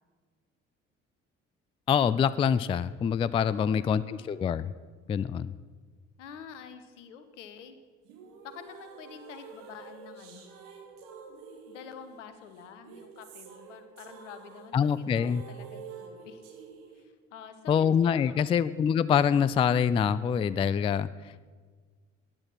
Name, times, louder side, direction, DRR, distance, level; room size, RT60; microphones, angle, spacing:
voice 1, 1.9-4.7 5.1-5.5 14.7-15.4 17.7-21.5, left 7 dB, 15° left, 17 dB, 0.3 m, -25 dB
voice 2, 3.4-4.3 6.2-7.8 8.4-10.5 11.7-16.4 16.9-18.6, left 7 dB, 70° left, 10 dB, 1.2 m, -48 dB
sound 1, 8.0-17.0, right 6 dB, 55° right, 2.0 m, -48 dB
15.0 x 10.5 x 5.9 m, 1.5 s
figure-of-eight pair, 50°, 37 cm